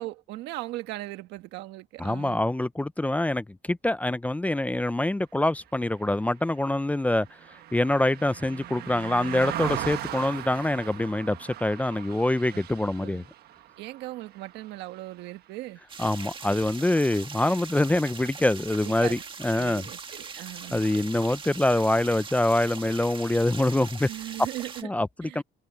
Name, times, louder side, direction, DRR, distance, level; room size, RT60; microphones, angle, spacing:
voice 1, 0.0-2.4 12.5-12.6 13.0-13.3 13.8-15.8 18.8-19.2 19.5-21.0 24.1-24.9 25.2-25.4, right 17 dB, 90° right, 1.5 m, -38 dB
voice 2, 2.0-7.3 7.7-13.2 16.0-19.9 20.7-24.1 24.8-25.4, left 1 dB, 10° left, 0.6 m, -25 dB
Car passing by, 6.0-15.6 15.9-16.2, right 13 dB, 70° right, 1.3 m, -39 dB
sound 1, 15.9-24.8, right 5 dB, 30° right, 2.0 m, -41 dB
cardioid pair, 110°, 17 cm